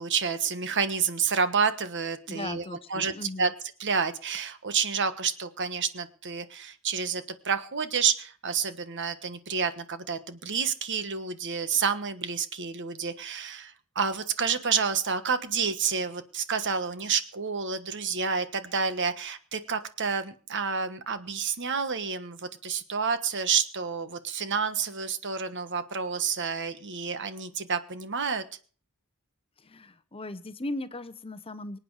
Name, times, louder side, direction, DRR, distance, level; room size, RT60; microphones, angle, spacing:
voice 1, 0.0-2.6 2.9-3.1 3.4-3.5 3.8-28.4, right 6 dB, 55° right, 11 dB, 1.3 m, -29 dB
voice 2, 2.3-3.5 29.6-31.8, left 2 dB, 25° left, 12 dB, 0.9 m, -38 dB
25.0 x 8.8 x 4.8 m, 0.42 s
head